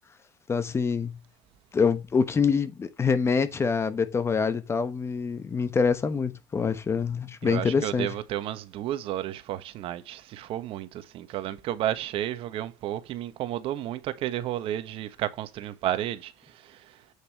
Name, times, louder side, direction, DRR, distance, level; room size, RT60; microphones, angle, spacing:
voice 1, 0.5-1.2 1.7-8.1, left 5 dB, 20° left, 1.1 m, -25 dB
voice 2, 7.4-16.3 16.6-16.8, right 12 dB, 50° right, 1.3 m, -32 dB
8.5 x 8.0 x 3.1 m
supercardioid pair, 110°, 12 cm